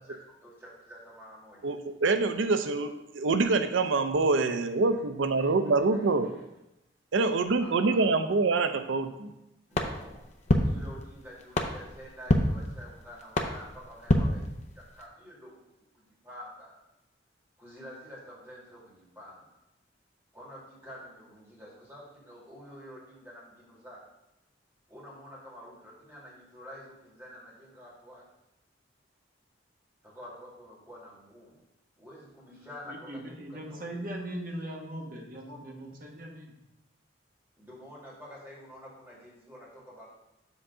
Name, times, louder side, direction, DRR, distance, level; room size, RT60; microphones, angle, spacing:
voice 1, 0.0-1.7 4.7-4.8 5.4-5.5 6.2-6.4 7.6-8.1 9.7-10.3 10.6-16.8 17.6-19.5 20.3-24.0 24.9-28.2 30.0-31.6 32.0-34.3 37.6-40.1, equal, 10° right, -7 dB, 2.4 m, -48 dB
voice 2, 1.6-6.3 7.1-9.3, right 3 dB, 85° right, 9 dB, 0.5 m, -26 dB
sound 1, 9.7-15.1, left 1 dB, 35° left, 0.6 m, -29 dB
voice 3, 32.9-36.6, right 1 dB, 45° right, 0 dB, 1.2 m, -39 dB
7.2 x 3.7 x 5.5 m, 0.90 s
head